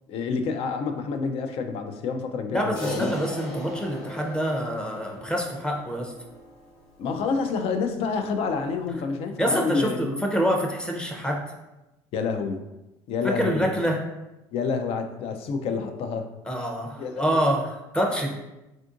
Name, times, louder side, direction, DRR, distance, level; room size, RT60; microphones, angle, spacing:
voice 1, 0.1-3.1 7.0-10.2 12.1-12.6 13.1-13.7 14.5-16.3 17.0-17.3, left 5 dB, 60° left, 7 dB, 0.4 m, -28 dB
voice 2, 2.5-6.1 9.4-11.4 13.2-14.0 16.5-18.3, equal, 10° left, 1 dB, 0.6 m, -26 dB
Crash cymbal, 2.8-7.3, left 1 dB, 85° left, 0.9 m, -38 dB
3.5 x 2.5 x 2.5 m, 0.99 s
supercardioid pair, 90°, 11 cm